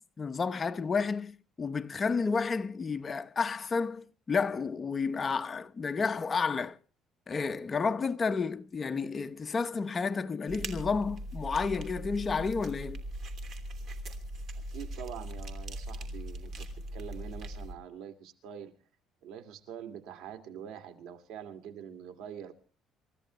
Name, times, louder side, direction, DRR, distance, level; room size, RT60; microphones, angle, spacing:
voice 1, 0.2-6.8 7.3-13.0, left 5 dB, 25° left, 0.8 m, -31 dB
sound 1, 10.5-17.7, right 1 dB, 45° right, 2.9 m, -40 dB
voice 2, 14.7-16.7 16.9-18.7 19.2-22.5, right 9 dB, 85° right, 2.3 m, -44 dB
29.0 x 14.0 x 3.1 m
cardioid pair, 145°, 0 cm